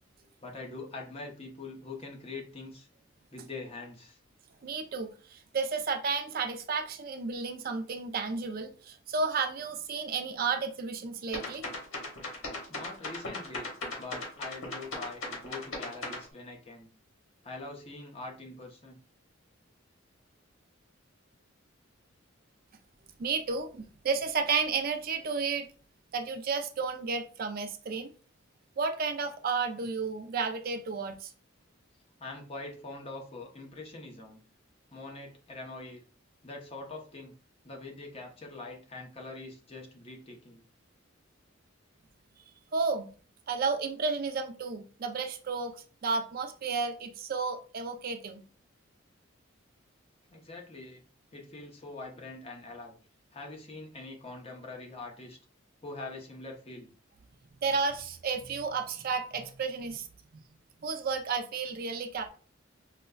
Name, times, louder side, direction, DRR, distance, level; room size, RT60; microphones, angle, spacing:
voice 1, 0.4-2.9 3.3-4.2 12.7-13.7 14.0-16.9 17.4-19.0 32.2-34.4 34.9-36.0 36.4-37.3 37.6-40.6 50.3-51.0 51.3-52.9 53.3-55.4 55.8-56.9, left 3 dB, 30° left, 0.7 m, -43 dB
voice 2, 4.6-11.6 23.2-25.7 26.1-28.1 28.8-31.3 42.7-43.1 43.5-48.4 57.6-60.1 60.8-62.3, right 4 dB, 45° right, 0.4 m, -32 dB
sound 1, 11.3-16.2, left 2 dB, 85° left, 1.3 m, -37 dB
5.0 x 2.1 x 2.3 m
head